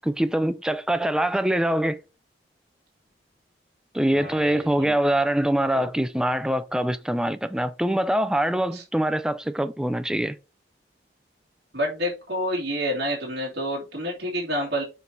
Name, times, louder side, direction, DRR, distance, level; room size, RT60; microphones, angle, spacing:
voice 1, 0.0-2.0 3.9-10.4, right 1 dB, 5° right, 0.3 m, -24 dB
voice 2, 4.1-4.9 5.7-5.9 8.7-8.8 11.7-14.8, equal, 60° right, 2.4 m, -29 dB
7.2 x 4.0 x 4.4 m
head